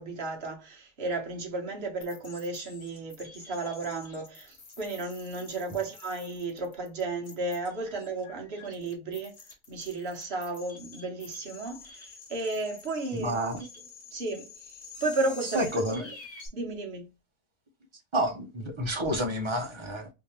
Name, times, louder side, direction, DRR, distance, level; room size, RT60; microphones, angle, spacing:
voice 1, 0.0-9.3 9.7-13.6 14.1-16.0 16.5-17.1, right 3 dB, 45° right, 1.3 m, -34 dB
sound 1, 2.0-16.5, left 4 dB, 45° left, 1.3 m, -48 dB
voice 2, 13.1-13.6 15.5-16.1 18.1-20.1, equal, 30° right, 0.6 m, -29 dB
3.5 x 2.8 x 3.1 m
omnidirectional pair, 1.5 m